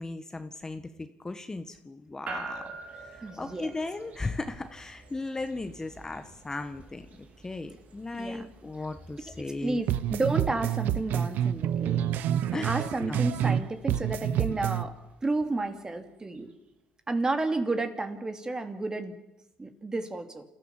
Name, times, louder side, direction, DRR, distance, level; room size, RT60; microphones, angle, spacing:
voice 1, 0.0-2.7 3.1-9.8 12.5-13.2, left 2 dB, 20° left, 8 dB, 1.5 m, -36 dB
sound 1, 2.3-16.5, right 4 dB, 45° right, 3.3 m, -48 dB
voice 2, 3.2-3.7 8.1-8.5 9.5-12.0 12.6-14.9 15.2-16.5 17.1-19.2 19.6-20.4, right 2 dB, 20° right, 7 dB, 2.9 m, -31 dB
sound 2, 9.9-13.6 13.9-14.8, right 10 dB, 70° right, 0.9 m, -28 dB
28.5 x 14.5 x 7.4 m, 0.97 s
supercardioid pair, 80°, 3 cm